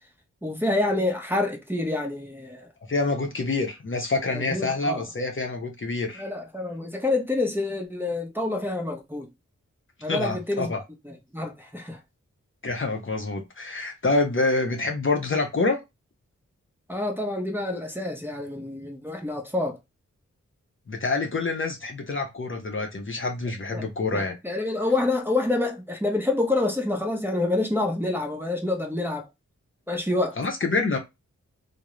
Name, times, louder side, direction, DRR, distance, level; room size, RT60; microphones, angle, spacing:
voice 1, 0.4-2.7 4.3-5.0 6.1-9.3 10.0-10.8 11.0-12.0 16.9-19.8 23.7-23.9 24.1-29.3 29.9-30.4, left 2 dB, 5° right, 0.7 m, -27 dB
voice 2, 2.9-6.2 10.1-10.8 12.6-15.8 20.9-24.4 30.4-31.0, left 3 dB, 40° left, 0.6 m, -26 dB
2.3 x 2.0 x 3.0 m
cardioid pair, 45°, 30 cm